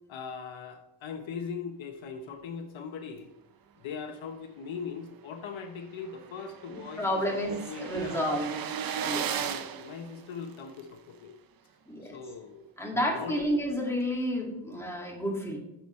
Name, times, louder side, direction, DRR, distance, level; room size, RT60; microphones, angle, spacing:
voice 1, 0.1-3.3 3.8-8.2 9.0-11.4 12.0-13.5, left 6 dB, 70° left, 6 dB, 1.0 m, -40 dB
sound 1, 5.2-5.3 5.7-5.8 5.9-10.8, right 8 dB, 50° right, 0.7 m, -36 dB
voice 2, 7.0-8.6 9.0-9.3 11.9-12.2 12.8-15.6, equal, 5° left, -2 dB, 2.2 m, -30 dB
11.0 x 6.9 x 3.2 m, 0.83 s
cardioid pair, 130°, 48 cm